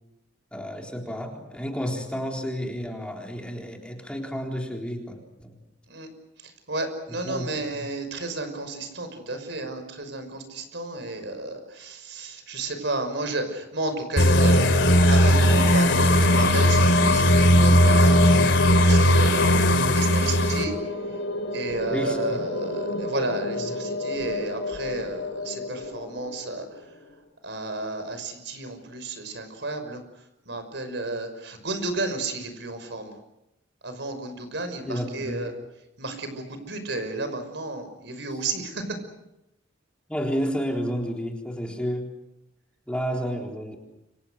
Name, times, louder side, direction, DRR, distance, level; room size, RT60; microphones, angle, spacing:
voice 1, 0.5-5.6 7.1-7.5 7.8-7.9 21.9-22.4 23.7-23.8 34.9-35.5 40.1-42.1 42.9-43.8, equal, 5° left, 1 dB, 3.8 m, -31 dB
voice 2, 6.4-14.7 15.1-20.7 21.5-26.7 27.4-30.0 30.5-33.1 33.8-35.5 36.0-39.0, right 2 dB, 65° right, 8 dB, 5.9 m, -32 dB
sound 1, 14.2-20.6, equal, 70° left, 3.2 m, -18 dB
sound 2, 14.3-26.8, left 2 dB, 90° left, 5.1 m, -29 dB
29.5 x 25.5 x 6.5 m, 0.87 s
head